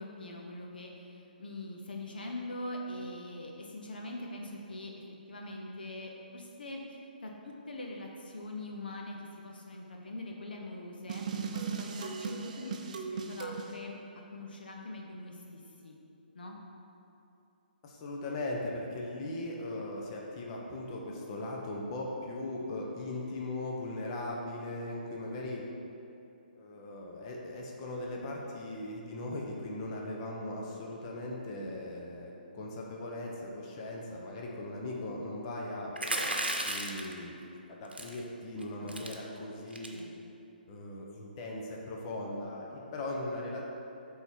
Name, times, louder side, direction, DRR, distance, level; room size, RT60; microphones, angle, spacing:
voice 1, 0.0-4.9 5.3-14.0 14.3-15.9 16.3-16.6 38.8-38.9 39.9-40.1, left 1 dB, 65° left, 0 dB, 0.8 m, -43 dB
sound 1, 11.1-13.7, right 5 dB, 45° right, 0.5 m, -37 dB
voice 2, 17.8-25.7 26.6-35.9 36.6-37.4 37.7-40.0 40.7-43.6, left 1 dB, 35° left, -2 dB, 0.9 m, -39 dB
sound 2, 36.0-37.1 37.9-38.2 38.6-38.7 38.9-39.1 39.7-40.0, right 1 dB, 85° right, 0.8 m, -33 dB
7.9 x 3.7 x 4.5 m, 2.7 s
figure-of-eight pair, 135°, 5 cm